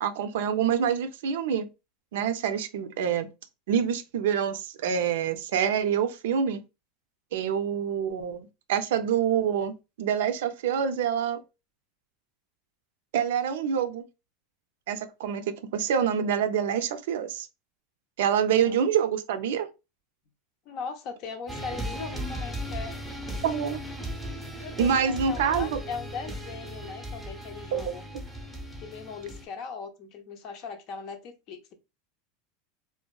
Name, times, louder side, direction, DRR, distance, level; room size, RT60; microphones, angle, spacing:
voice 1, 0.0-1.7 2.1-3.3 3.7-6.6 7.3-11.4 13.1-14.0 14.9-17.5 18.2-19.7 23.4-23.8 24.8-25.8 27.7-27.9, right 8 dB, 75° right, 0.4 m, -26 dB
voice 2, 20.7-22.9 24.6-28.0 28.8-31.7, left 5 dB, 55° left, 0.6 m, -39 dB
sound 1, 21.5-29.5, equal, 5° left, 0.6 m, -37 dB
2.5 x 2.2 x 2.2 m
hypercardioid pair, 100°, 0 cm